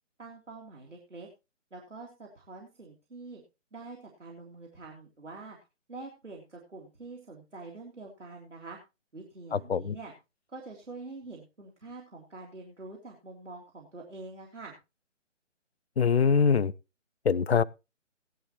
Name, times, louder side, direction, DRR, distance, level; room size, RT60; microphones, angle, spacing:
voice 1, 0.2-1.3 1.7-3.4 3.7-5.6 5.9-8.8 9.1-10.1 10.5-14.7, right 3 dB, 70° right, 3.3 m, -45 dB
voice 2, 9.5-10.0 16.0-16.7 17.3-17.6, left 6 dB, 55° left, 0.5 m, -23 dB
16.5 x 11.0 x 3.0 m
figure-of-eight pair, 150°, 38 cm